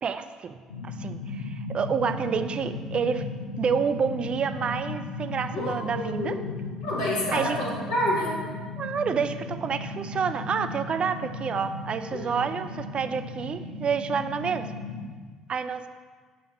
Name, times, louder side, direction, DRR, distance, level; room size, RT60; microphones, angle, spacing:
voice 1, 0.0-3.2 3.6-6.4 7.3-7.6 8.8-14.7 15.5-15.9, right 6 dB, 40° right, 10 dB, 0.3 m, -29 dB
sound 1, 0.7-15.1, left 2 dB, 90° left, 0.5 m, -36 dB
voice 2, 5.5-6.5 6.8-8.3 12.1-12.3, left 1 dB, 70° left, -5 dB, 1.9 m, -28 dB
7.1 x 5.7 x 2.8 m, 1.5 s
figure-of-eight pair, 55°, 3 cm